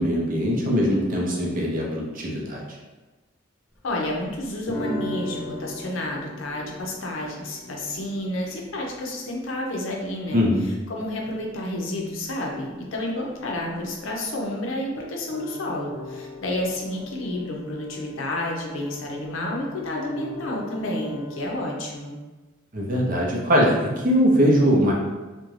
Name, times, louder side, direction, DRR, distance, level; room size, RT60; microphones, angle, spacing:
voice 1, 0.0-2.8 10.3-10.7 22.7-24.9, equal, 40° right, -2 dB, 0.5 m, -21 dB
sound 1, 3.7-15.0 15.3-21.7, left 2 dB, 10° left, 0.8 m, -40 dB
voice 2, 3.8-10.4 10.9-22.1, left 1 dB, 75° left, -1 dB, 0.5 m, -30 dB
2.4 x 2.1 x 3.1 m, 1.2 s
head